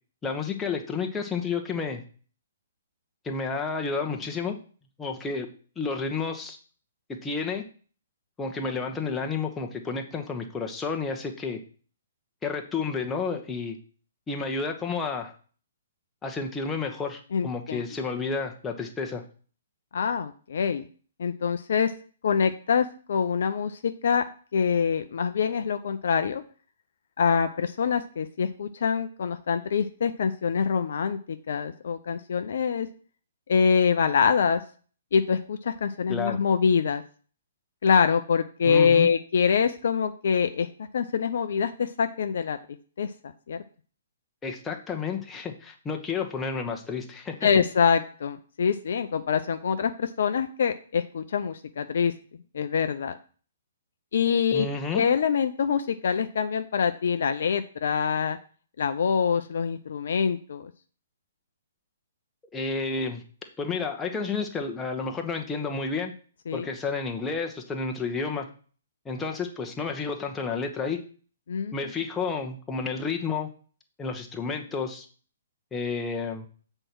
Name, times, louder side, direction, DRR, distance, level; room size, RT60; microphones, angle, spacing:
voice 1, 0.2-2.0 3.2-4.6 5.0-5.5 5.8-6.6 7.1-7.6 8.4-11.6 12.4-13.8 14.3-15.3 16.2-19.2 36.1-36.4 38.6-39.1 44.4-47.6 54.5-55.0 62.5-63.2 63.6-66.1 66.5-68.5 69.0-71.0 71.7-73.5 74.0-75.1 75.7-76.5, left 4 dB, 10° left, 2 dB, 1.2 m, -31 dB
voice 2, 17.3-17.8 19.9-20.9 21.2-21.9 22.2-24.2 24.5-26.4 27.2-32.9 33.5-34.6 35.1-37.0 37.8-40.7 40.9-42.6 43.0-43.1 43.5-43.6 47.4-52.1 52.5-53.2 54.1-54.7 54.9-58.4 58.8-60.7 66.5-66.7 71.5-71.7, left 6 dB, 55° left, 9 dB, 0.6 m, -25 dB
7.9 x 4.4 x 6.1 m, 0.41 s
figure-of-eight pair, 120°, 0 cm